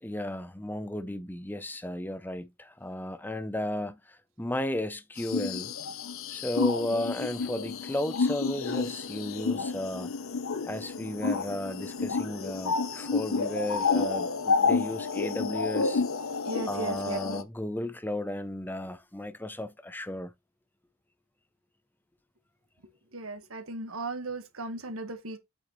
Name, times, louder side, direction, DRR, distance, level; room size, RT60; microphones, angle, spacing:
voice 1, 0.0-5.7 6.3-10.1 10.7-16.0 16.7-20.3, left 1 dB, 10° left, 0.6 m, -34 dB
sound 1, 5.2-17.4, left 4 dB, 75° left, 0.8 m, -30 dB
voice 2, 16.5-17.2 23.1-25.4, right 3 dB, 85° right, 1.6 m, -36 dB
8.1 x 6.4 x 3.1 m
head